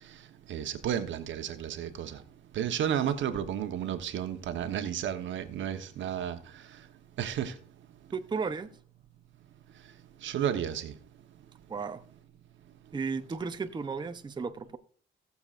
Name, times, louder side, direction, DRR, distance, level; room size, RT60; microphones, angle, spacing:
voice 1, 0.5-2.2 2.5-6.4 7.2-7.5 10.2-10.9, right 9 dB, 70° right, 1.1 m, -32 dB
voice 2, 8.1-8.7 11.7-12.0 12.9-14.8, right 5 dB, 20° right, 0.7 m, -34 dB
19.0 x 7.0 x 2.5 m
cardioid pair, 90°, 20 cm